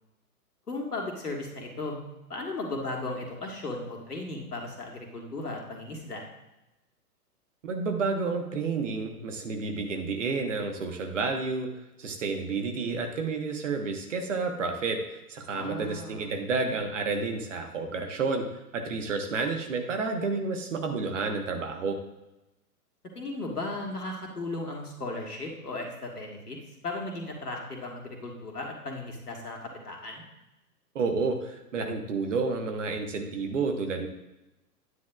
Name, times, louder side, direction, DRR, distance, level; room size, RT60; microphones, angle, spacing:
voice 1, 0.7-2.0 2.3-6.2 15.5-16.3 23.2-26.6 26.8-30.2, left 2 dB, 70° left, 0 dB, 2.0 m, -36 dB
voice 2, 7.6-11.7 12.0-22.0 30.9-34.1, right 4 dB, 50° right, 4 dB, 1.3 m, -30 dB
9.6 x 9.5 x 2.4 m, 0.97 s
figure-of-eight pair, 115°, 47 cm